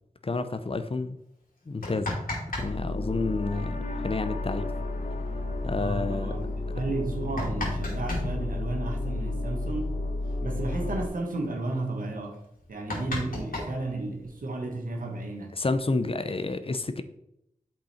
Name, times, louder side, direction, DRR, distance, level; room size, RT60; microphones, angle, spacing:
voice 1, 0.2-1.2 1.7-2.2 2.6-4.7 5.6-6.4 15.6-17.0, left 3 dB, 40° left, 0.7 m, -30 dB
sound 1, 1.6-2.7 2.9-3.0 4.8-4.9 5.3-5.4 6.0-6.1 6.9-8.3 9.8-9.9 10.2-10.4 10.7-11.1 11.7-11.8 12.1-12.2 12.5-14.4 15.3-16.2, left 1 dB, 85° left, 2.5 m, -34 dB
sound 2, 2.6-11.1, left 2 dB, 70° left, 1.0 m, -32 dB
voice 2, 5.8-10.0 10.4-12.4 12.7-15.6, right 2 dB, 80° right, 1.6 m, -33 dB
7.5 x 5.5 x 4.4 m
cardioid pair, 50°, 14 cm